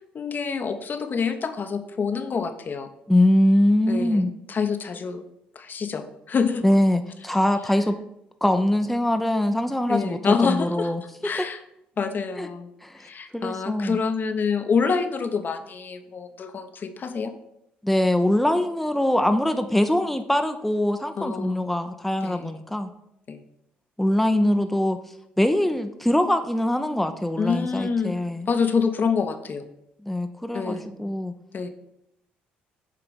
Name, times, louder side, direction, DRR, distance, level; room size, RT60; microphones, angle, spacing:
voice 1, 0.1-2.9 3.9-5.2 5.5-6.6 9.9-10.9 11.2-11.6 12.0-12.7 13.0-17.3 21.2-21.7 22.2-22.6 23.3-23.4 27.4-29.7 30.5-30.9 31.5-31.7, left 5 dB, 45° left, 8 dB, 0.8 m, -27 dB
voice 2, 3.1-4.3 6.6-8.0 8.4-11.0 12.4-12.5 12.8-13.1 13.3-14.0 17.8-22.9 24.0-25.0 25.4-28.5 30.0-31.3, left 1 dB, 5° left, 7 dB, 0.6 m, -22 dB
8.4 x 2.9 x 5.1 m, 0.79 s
hypercardioid pair, 55°, 4 cm